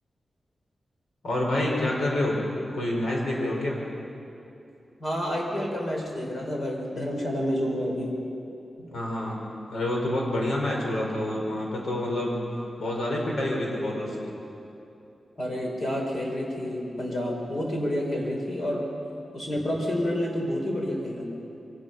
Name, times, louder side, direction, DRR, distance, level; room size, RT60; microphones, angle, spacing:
voice 1, 1.2-2.4 2.7-3.8 8.9-12.4 12.8-14.3, left 1 dB, 85° left, -2 dB, 5.1 m, -28 dB
voice 2, 5.0-8.2 8.8-8.9 15.4-18.9 19.3-21.3, equal, 45° left, -1 dB, 4.1 m, -29 dB
24.0 x 19.0 x 5.8 m, 2.8 s
wide cardioid pair, 165°, 0 cm